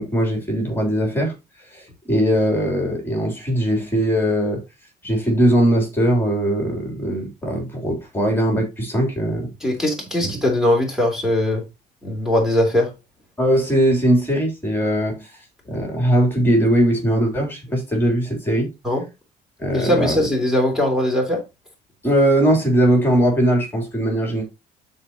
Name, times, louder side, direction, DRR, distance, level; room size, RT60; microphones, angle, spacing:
voice 1, 0.0-1.3 1.7-4.6 5.0-9.5 10.2-10.3 13.4-15.3 15.7-18.7 19.6-20.3 22.0-24.4, right 1 dB, 15° left, 3.3 m, -20 dB
voice 2, 9.6-11.6 12.0-12.9 18.8-19.0 19.7-21.4, left 1 dB, 5° right, 3.3 m, -20 dB
13.0 x 4.4 x 2.9 m
cardioid pair, 110°, 17 cm